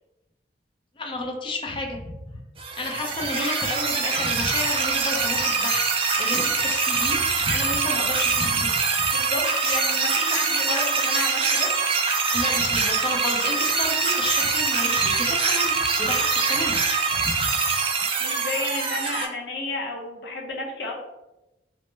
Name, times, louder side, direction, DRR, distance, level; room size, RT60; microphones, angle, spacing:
voice 1, 1.0-2.2 2.8-9.1 12.3-17.5, left 2 dB, 30° left, 1 dB, 0.5 m, -31 dB
sound 1, 2.6-19.3, right 4 dB, 30° right, 0.4 m, -24 dB
voice 2, 9.1-11.7 18.2-20.9, left 2 dB, 70° left, -1 dB, 0.7 m, -31 dB
3.0 x 2.1 x 3.2 m, 0.98 s
head